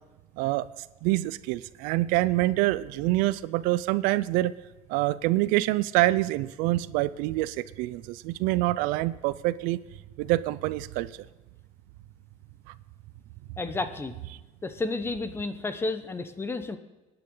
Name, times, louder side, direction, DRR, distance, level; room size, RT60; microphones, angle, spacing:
voice 1, 1.0-4.5 4.9-9.8 10.2-11.1, right 17 dB, 85° right, 17 dB, 0.5 m, -26 dB
voice 2, 13.6-14.2 14.6-16.8, left 3 dB, 15° left, 10 dB, 0.9 m, -31 dB
23.5 x 10.0 x 3.9 m, 1.1 s
cardioid pair, 125°, 14 cm